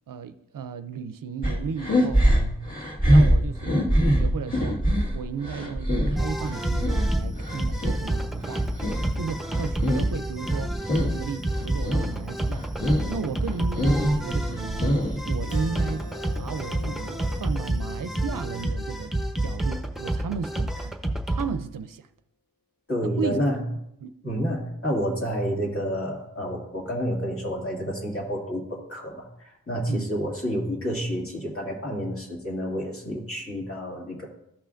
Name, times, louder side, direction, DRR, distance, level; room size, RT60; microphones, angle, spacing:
voice 1, 0.1-2.2 3.1-3.8 4.1-4.8 5.1-8.6 9.2-12.7 13.1-14.9 15.3-16.0 16.4-19.1 19.4-21.0 21.3-22.1 23.0-23.4 24.0-24.1 29.9-30.1, right 6 dB, 65° right, 0.5 m, -34 dB
sound 1, 1.4-8.0 8.4-10.2 10.4-11.2 11.5-12.1 12.5-13.1 13.5-15.3, equal, 25° left, 1.9 m, -23 dB
sound 2, 6.2-21.5, right 1 dB, ahead, 0.8 m, -29 dB
Keyboard (musical), 15.5-20.7, left 4 dB, 65° left, 2.4 m, -47 dB
voice 2, 22.9-23.6 24.2-34.3, equal, 40° left, 2.2 m, -29 dB
14.5 x 5.6 x 2.5 m
wide cardioid pair, 80°, 35 cm